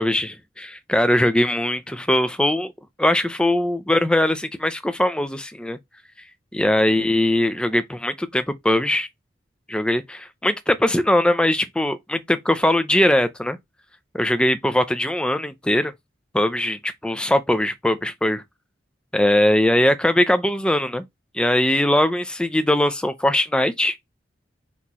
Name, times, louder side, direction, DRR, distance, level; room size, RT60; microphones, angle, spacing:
voice 1, 0.0-2.7 3.0-5.8 6.5-9.1 9.7-13.6 14.1-15.9 16.3-18.4 19.1-21.0 21.3-24.0, left 1 dB, 5° left, 0.4 m, -21 dB
4.3 x 3.0 x 4.1 m
head